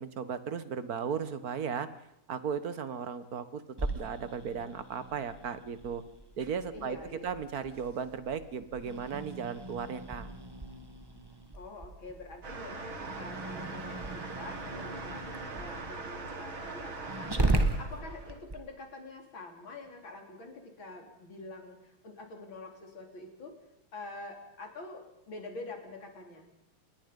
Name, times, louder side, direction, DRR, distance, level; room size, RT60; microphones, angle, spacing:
voice 1, 0.0-1.9 2.3-3.6 3.9-6.0 6.4-7.0 7.2-10.3, right 6 dB, 50° right, 13 dB, 1.5 m, -36 dB
Growling, 3.8-18.6, right 2 dB, 15° right, 1.3 m, -37 dB
voice 2, 6.7-7.4 11.5-23.5 23.9-26.5, left 2 dB, 65° left, 3 dB, 4.4 m, -46 dB
sound 1, 12.4-18.4, right 3 dB, 70° right, 3.1 m, -42 dB
27.5 x 21.0 x 5.3 m, 0.85 s
omnidirectional pair, 2.3 m